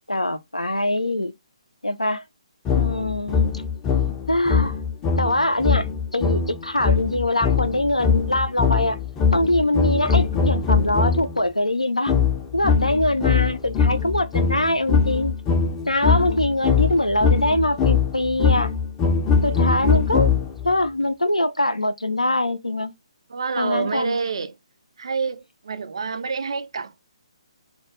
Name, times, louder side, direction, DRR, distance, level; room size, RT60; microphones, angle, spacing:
voice 1, 0.1-1.3 1.8-2.2 2.7-3.6 4.3-4.8 5.1-5.9 6.1-9.0 9.3-12.1 12.5-15.3 15.9-18.7 19.4-20.3 20.6-22.9 23.6-24.2, left 1 dB, 85° left, 0.4 m, -23 dB
sound 1, 2.7-11.4 12.1-20.7, left 5 dB, 15° left, 0.4 m, -22 dB
voice 2, 23.3-24.6 25.0-27.0, right 5 dB, 55° right, 0.3 m, -28 dB
2.2 x 2.1 x 2.8 m
figure-of-eight pair, 135°, 3 cm